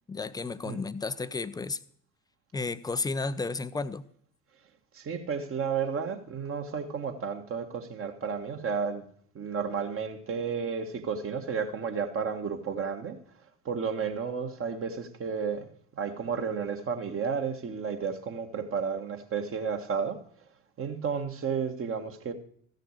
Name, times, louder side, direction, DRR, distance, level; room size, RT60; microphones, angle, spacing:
voice 1, 0.1-1.8 2.5-4.0, left 3 dB, 10° left, 0.5 m, -32 dB
voice 2, 4.9-9.0 9.3-13.2 13.6-15.7 16.0-20.2 20.8-22.3, right 6 dB, 35° right, 1.6 m, -32 dB
14.5 x 6.6 x 6.5 m
figure-of-eight pair, 65°, 40 cm